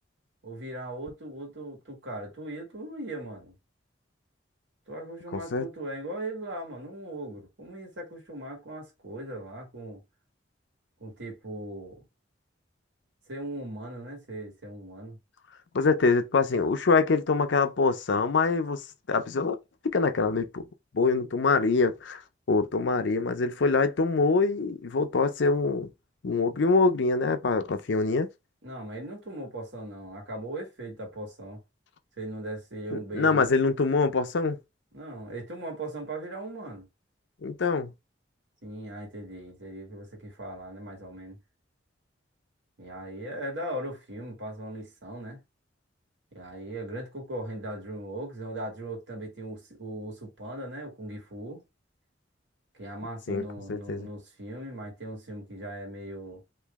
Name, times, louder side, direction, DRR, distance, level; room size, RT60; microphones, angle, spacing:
voice 1, 0.4-3.6 4.9-10.0 11.0-12.0 13.3-15.2 28.6-31.6 32.2-33.4 34.9-36.9 38.6-41.4 42.8-45.4 46.3-51.6 52.7-56.4, right 1 dB, 80° right, 1.8 m, -39 dB
voice 2, 5.3-5.7 15.7-19.6 19.8-20.6 20.9-22.2 22.5-25.9 26.2-28.3 32.9-34.6 37.4-37.9 53.3-53.4 53.7-54.1, left 4 dB, 75° left, 0.6 m, -24 dB
3.1 x 2.6 x 3.5 m
head